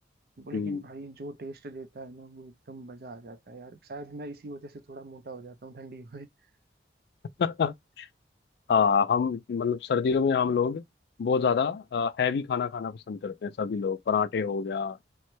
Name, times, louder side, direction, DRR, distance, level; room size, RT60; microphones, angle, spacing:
voice 1, 0.4-6.3, right 2 dB, 55° right, 0.4 m, -42 dB
voice 2, 7.4-8.1 8.7-10.8 11.2-15.0, left 6 dB, 70° left, 0.3 m, -26 dB
3.1 x 2.1 x 3.0 m
head